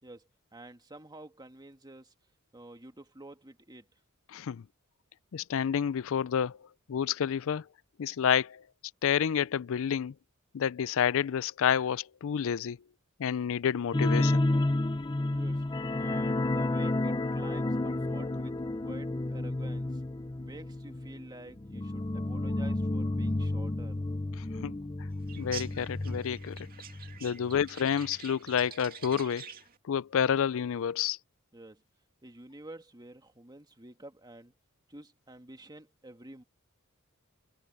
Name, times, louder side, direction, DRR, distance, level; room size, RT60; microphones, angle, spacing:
voice 1, 0.0-2.1 2.5-3.9 15.3-15.6 16.0-18.5 18.8-20.0 20.4-24.0 27.3-27.5 31.5-31.8 32.2-34.5 34.9-36.4, right 1 dB, 20° right, 2.0 m, -49 dB
voice 2, 4.3-4.6 5.3-6.6 6.9-7.6 8.0-8.6 9.0-10.1 10.5-12.8 13.2-14.5 24.6-24.7 25.4-26.7 27.2-29.5 29.9-31.2, left 8 dB, 65° left, 0.4 m, -29 dB
sound 1, 13.9-27.2 27.5-27.7 28.1-28.2, left 2 dB, 20° left, 0.7 m, -31 dB
sound 2, 25.3-29.8, right 8 dB, 45° right, 2.2 m, -47 dB
head